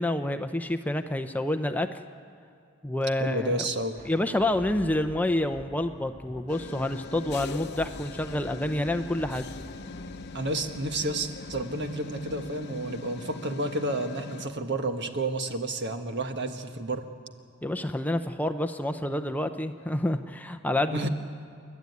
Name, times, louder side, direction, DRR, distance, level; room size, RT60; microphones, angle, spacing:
voice 1, 0.0-1.9 2.8-3.7 4.1-9.5 17.6-21.1, left 1 dB, 10° left, 8 dB, 0.6 m, -28 dB
voice 2, 3.2-4.0 10.3-17.0 20.9-21.1, right 2 dB, 55° right, 6 dB, 1.5 m, -30 dB
Thunder, 3.7-14.1, equal, 35° right, 2.0 m, -48 dB
sound 1, 6.5-14.5, left 4 dB, 50° left, 0.8 m, -42 dB
30.0 x 12.0 x 9.5 m, 2.3 s
head